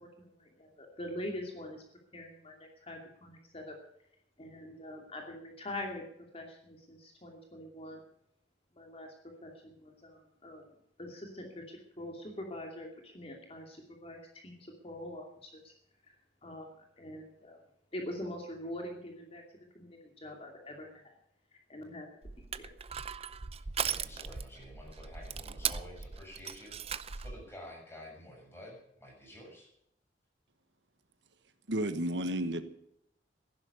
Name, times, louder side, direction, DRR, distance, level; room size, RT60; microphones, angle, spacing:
voice 1, 0.0-1.8 2.1-3.8 4.4-6.0 6.3-8.0 8.7-9.1 9.4-10.7 11.0-15.7 16.4-17.6 17.9-19.4 19.7-21.1 21.5-22.1 22.4-22.7, left 1 dB, 35° left, 1 dB, 2.6 m, -44 dB
Crushing, 22.2-27.4, right 7 dB, 35° right, 0.6 m, -38 dB
voice 2, 23.5-29.7, left 1 dB, 15° left, -1 dB, 7.1 m, -50 dB
voice 3, 31.7-32.6, right 1 dB, 80° right, 10 dB, 1.3 m, -32 dB
15.0 x 11.5 x 6.8 m, 0.75 s
head